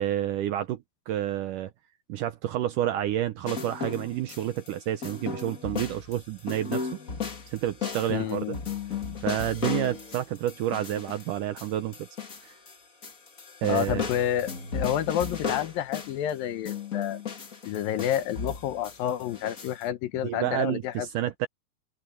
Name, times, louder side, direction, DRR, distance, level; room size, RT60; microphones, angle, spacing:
voice 1, 0.0-1.7 2.1-6.9 7.5-8.6 9.2-12.0 12.4-12.6 13.6-14.0 20.2-21.5, right 12 dB, 75° right, 2.0 m, -29 dB
sound 1, 3.4-4.7 5.0-12.7 13.0-16.3 16.7-19.8, left 6 dB, 35° left, 1.4 m, -35 dB
voice 2, 8.1-8.6 13.7-17.2 17.7-21.1, left 11 dB, 70° left, 2.6 m, -29 dB
open air
omnidirectional pair, 4.5 m